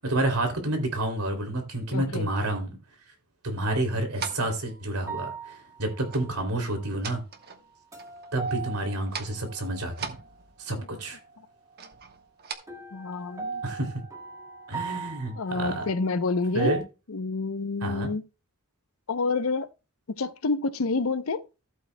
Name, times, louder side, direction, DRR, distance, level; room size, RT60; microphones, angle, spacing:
voice 1, 0.0-2.8 3.4-7.2 8.3-10.2 10.6-11.2 13.6-13.9 14.7-15.8 16.5-16.8 17.8-18.1, right 1 dB, 85° right, 2.8 m, -29 dB
voice 2, 1.9-2.3 10.8-10.9 12.9-13.6 15.4-16.8 17.1-18.2 19.1-19.7 20.1-21.4, left 3 dB, 65° left, 0.7 m, -28 dB
sound 1, 4.2-4.6 6.1-6.3 6.7-7.7 8.0-8.7 9.0-9.4 9.9-10.8 11.8-12.5, right 6 dB, 45° right, 1.2 m, -40 dB
sound 2, 4.3-4.6 5.1-6.9 7.4-10.3 12.7-16.8, right 5 dB, 15° right, 1.9 m, -39 dB
14.5 x 8.2 x 2.2 m
head